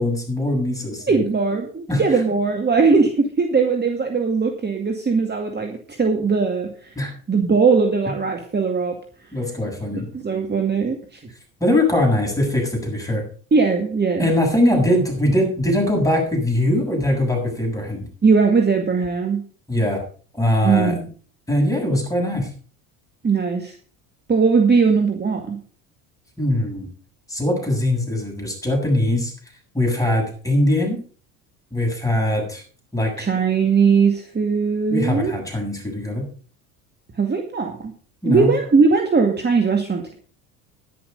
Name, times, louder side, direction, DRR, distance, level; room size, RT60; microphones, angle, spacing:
voice 1, 0.0-1.2 1.9-2.0 7.0-7.1 9.3-10.1 11.6-13.2 14.2-18.1 19.7-20.0 20.4-20.9 21.5-22.5 26.4-26.9 27.3-29.3 29.7-31.0 31.7-32.6 32.9-33.3 34.9-36.2 38.2-38.5, left 1 dB, 10° left, 1 dB, 7.4 m, -21 dB
voice 2, 1.1-6.9 7.3-9.0 9.9-11.2 13.5-14.3 18.2-19.4 20.6-21.1 23.2-23.8 24.3-25.6 33.2-35.3 37.2-37.9 38.3-40.1, right 5 dB, 25° right, 4 dB, 2.2 m, -19 dB
11.0 x 11.0 x 5.4 m, 0.42 s
hypercardioid pair, 75°, 43 cm